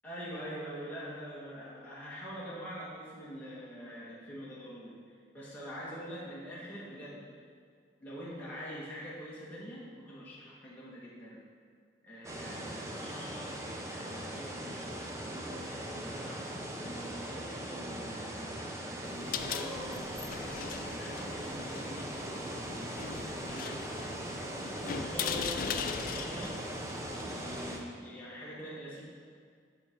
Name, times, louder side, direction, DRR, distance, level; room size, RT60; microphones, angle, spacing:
voice 1, 0.0-5.0 5.3-7.4 8.0-11.4 12.0-22.8 23.3-24.3 24.7-26.7 27.1-29.0, equal, 10° left, -8 dB, 1.8 m, -45 dB
sound 1, 12.2-27.8, right 1 dB, 15° right, 0.6 m, -40 dB
sound 2, 19.1-27.8, left 6 dB, 50° left, 0.3 m, -40 dB
10.5 x 4.3 x 4.6 m, 2.1 s
head